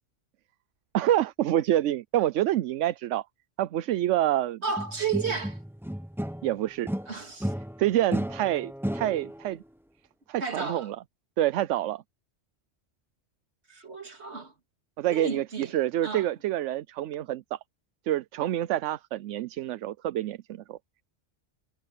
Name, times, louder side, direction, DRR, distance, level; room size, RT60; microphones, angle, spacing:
voice 1, 0.9-3.2 3.6-4.6 6.4-6.9 7.8-9.6 10.3-11.0 11.4-12.0 15.0-17.6 18.0-20.4 20.7-20.8, right 13 dB, 85° right, 0.9 m, -27 dB
voice 2, 4.6-5.6 7.1-7.5 10.4-10.9 13.7-14.5 15.0-15.7 16.0-16.3, right 5 dB, 65° right, 2.8 m, -33 dB
sound 1, 4.8-6.5 6.9-9.5, equal, ahead, 0.8 m, -33 dB
omnidirectional pair, 1.2 m